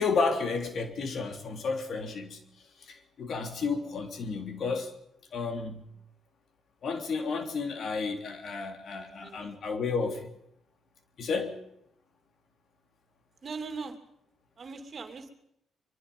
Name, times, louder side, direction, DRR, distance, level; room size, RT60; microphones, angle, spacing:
voice 1, 0.0-2.4 2.8-4.9 5.3-5.8 6.8-10.3 11.2-11.6, left 4 dB, 60° left, 6 dB, 3.1 m, -32 dB
voice 2, 8.9-9.6 13.4-14.0 14.6-15.3, right 4 dB, 45° right, 7 dB, 2.8 m, -40 dB
23.5 x 23.5 x 5.5 m, 0.78 s
cardioid pair, 90°, 0 cm